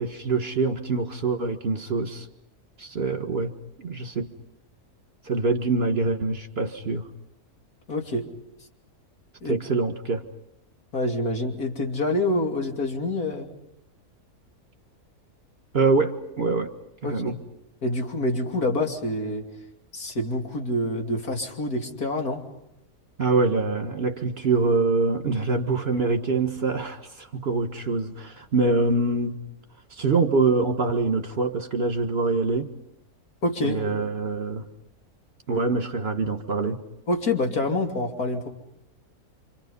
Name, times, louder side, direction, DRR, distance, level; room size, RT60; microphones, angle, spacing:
voice 1, 0.0-2.3 2.8-4.3 5.2-7.1 9.4-10.3 15.7-16.7 17.0-17.4 23.2-29.4 29.9-32.7 33.6-34.7 35.5-36.8, right 3 dB, 45° right, 6 dB, 2.0 m, -25 dB
voice 2, 7.9-8.3 9.4-9.6 10.9-13.5 17.0-17.2 17.8-19.4 19.9-22.4 33.4-34.1 37.1-38.5, left 2 dB, 80° left, 3 dB, 3.3 m, -27 dB
29.0 x 26.0 x 5.6 m, 0.83 s
omnidirectional pair, 1.6 m